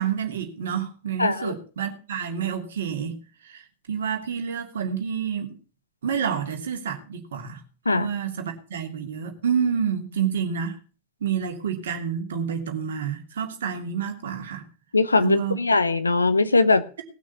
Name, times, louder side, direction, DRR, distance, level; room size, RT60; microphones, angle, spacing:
voice 1, 0.0-3.2 3.4-5.6 6.0-7.6 7.9-10.8 11.2-14.6 15.2-15.6, right 7 dB, 60° right, 2.8 m, -28 dB
voice 2, 1.2-1.5 7.8-8.1 14.9-16.8, left 3 dB, 80° left, 1.0 m, -20 dB
18.5 x 6.3 x 7.0 m
figure-of-eight pair, 90°, 0 cm